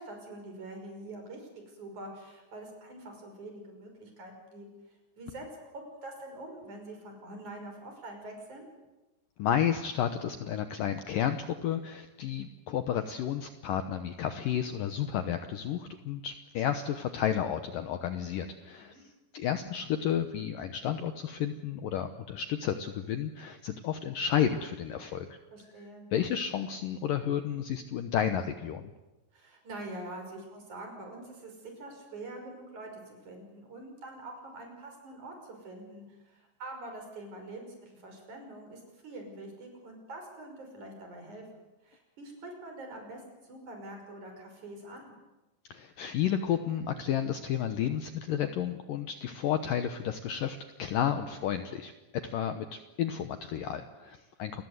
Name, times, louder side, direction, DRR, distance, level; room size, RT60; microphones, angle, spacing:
voice 1, 0.0-4.7 5.2-5.4 5.7-8.7 18.7-19.0 25.5-26.0 29.3-45.1 53.9-54.0, right 2 dB, 45° right, 3 dB, 6.8 m, -45 dB
voice 2, 9.4-25.4 26.1-28.9 45.7-51.9 52.2-54.6, left 9 dB, 70° left, 8 dB, 2.2 m, -32 dB
29.0 x 21.0 x 8.1 m, 1.1 s
omnidirectional pair, 5.0 m